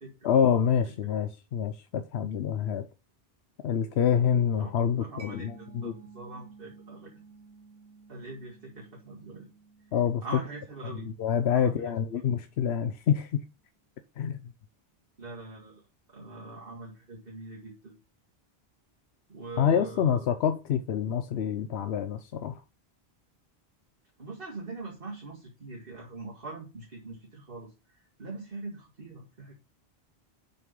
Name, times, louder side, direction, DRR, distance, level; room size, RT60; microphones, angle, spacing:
voice 1, 0.2-2.8 3.6-5.9 9.9-10.2 10.9-13.4 14.2-14.4 19.6-22.6, left 8 dB, 80° left, 0.9 m, -27 dB
voice 2, 5.0-7.2 8.1-9.5 10.2-11.1 11.5-11.9 15.2-15.8 16.1-17.9 19.3-20.3 24.2-29.5, right 2 dB, 60° right, 2.3 m, -42 dB
Mallet percussion, 5.2-12.6, right 4 dB, 80° right, 1.4 m, -54 dB
7.3 x 6.0 x 5.3 m
omnidirectional pair, 1.1 m